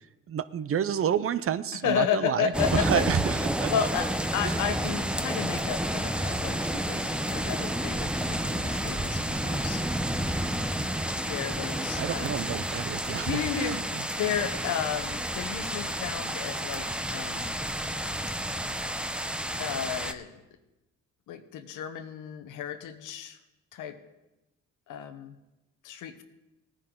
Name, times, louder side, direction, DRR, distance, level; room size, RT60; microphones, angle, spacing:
voice 1, 0.3-3.7 4.4-4.5 12.0-14.0, right 8 dB, 50° right, 15 dB, 0.6 m, -29 dB
voice 2, 1.8-3.0 3.7-9.8 11.2-12.4 13.1-17.6 19.6-20.3 21.3-23.4 23.7-24.0 24.9-25.3 25.8-26.2, left 8 dB, 85° left, 9 dB, 1.1 m, -33 dB
sound 1, 2.5-20.1, right 1 dB, 5° right, 0.7 m, -30 dB
17.5 x 9.9 x 3.8 m, 1.0 s
cardioid pair, 90°, 30 cm